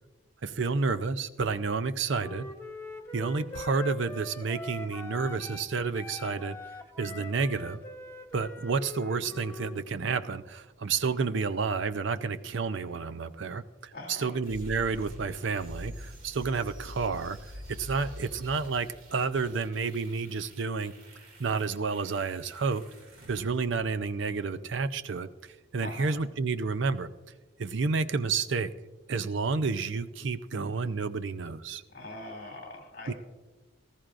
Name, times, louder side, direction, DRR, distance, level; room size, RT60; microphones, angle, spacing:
voice 1, 0.4-2.5 3.1-6.6 7.0-7.8 8.3-17.4 17.7-20.9 21.4-22.8 23.3-25.3 25.7-27.1 27.6-28.7 29.1-31.8 33.1-33.2, right 4 dB, 65° right, 12 dB, 0.5 m, -30 dB
Wind instrument woodwind instrument, 2.1-5.7 5.9-9.8, left 1 dB, 10° left, 0.7 m, -42 dB
voice 2, 13.9-14.3 25.8-26.2 31.9-33.1, left 2 dB, 45° left, 2 dB, 2.7 m, -42 dB
sound 1, 14.4-24.4, equal, 80° right, 2.5 m, -46 dB
18.5 x 14.0 x 2.5 m, 1.2 s
head